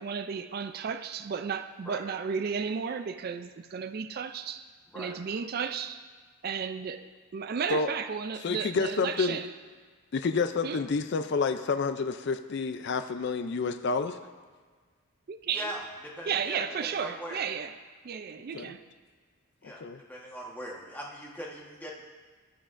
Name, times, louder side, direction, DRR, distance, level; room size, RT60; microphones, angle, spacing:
voice 1, 0.0-4.6 4.9-6.0 6.4-9.5 10.6-10.8 15.3-15.7 16.3-17.8 18.0-18.9, right 6 dB, 45° right, 10 dB, 0.3 m, -33 dB
voice 2, 8.4-9.4 10.1-14.2 18.5-18.7 19.8-20.0, left 4 dB, 50° left, 9 dB, 0.4 m, -29 dB
voice 3, 15.5-17.4 19.6-19.8 20.1-22.0, equal, 10° left, -3 dB, 1.2 m, -40 dB
17.5 x 7.2 x 2.5 m, 1.5 s
head